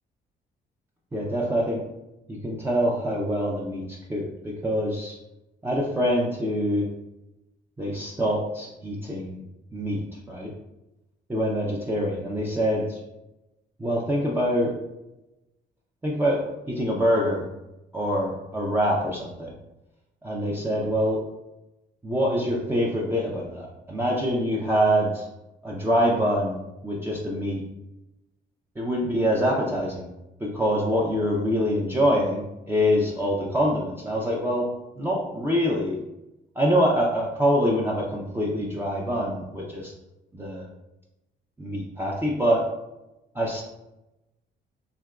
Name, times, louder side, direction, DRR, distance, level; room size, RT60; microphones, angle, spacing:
voice 1, 1.1-1.8 2.3-5.1 5.6-6.9 7.8-9.4 9.7-10.0 10.3-10.5 11.3-13.0 13.8-14.7 16.0-17.5 17.9-19.5 20.2-21.2 22.0-25.3 25.6-27.6 28.8-30.1 30.4-34.7 35.0-36.0 36.6-39.9 40.3-40.7 41.6-42.7 43.3-43.6, equal, 10° right, -4 dB, 0.5 m, -25 dB
3.3 x 2.9 x 2.3 m, 0.96 s
cardioid pair, 90°, 20 cm